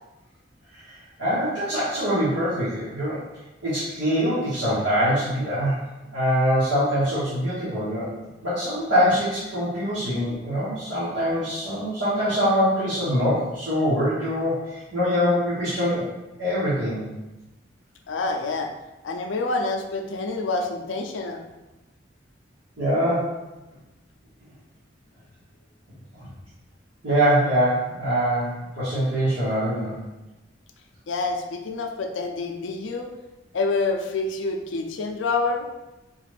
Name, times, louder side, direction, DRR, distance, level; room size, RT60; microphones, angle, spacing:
voice 1, 0.7-3.2 3.6-5.8 6.1-8.1 8.4-16.1 16.4-17.0 22.8-23.4 27.0-30.0, equal, 85° right, -12 dB, 1.2 m, -24 dB
voice 2, 18.1-18.7 19.0-21.4 31.1-33.1 33.5-35.7, left 3 dB, 80° left, 4 dB, 0.4 m, -27 dB
3.9 x 2.4 x 3.3 m, 1.0 s
head